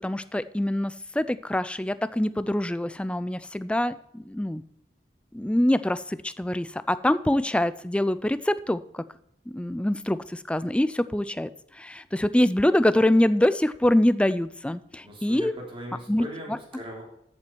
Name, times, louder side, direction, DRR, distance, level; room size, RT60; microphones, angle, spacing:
voice 1, 0.0-4.6 5.3-9.0 9.5-11.5 11.8-15.5 16.1-16.6, left 1 dB, 5° left, 14 dB, 0.4 m, -25 dB
voice 2, 15.0-17.0, equal, 30° right, -1 dB, 3.2 m, -39 dB
14.0 x 8.1 x 4.6 m, 0.75 s
head